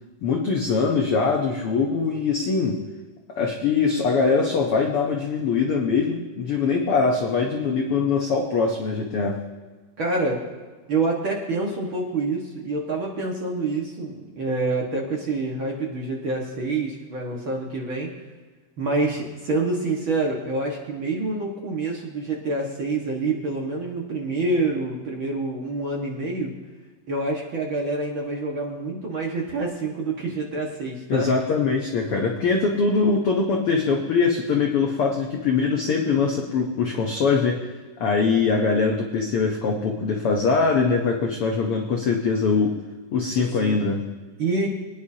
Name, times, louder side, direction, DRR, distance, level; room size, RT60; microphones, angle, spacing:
voice 1, 0.2-2.8 3.3-9.4 31.1-37.7 38.0-42.7 43.1-44.0, left 4 dB, 75° left, 1 dB, 1.3 m, -22 dB
voice 2, 10.0-10.4 10.9-18.1 18.8-26.6 27.1-31.3 43.3-43.8 44.4-44.7, right 3 dB, 45° right, -2 dB, 1.7 m, -27 dB
24.0 x 10.0 x 2.8 m, 1.3 s
omnidirectional pair, 4.1 m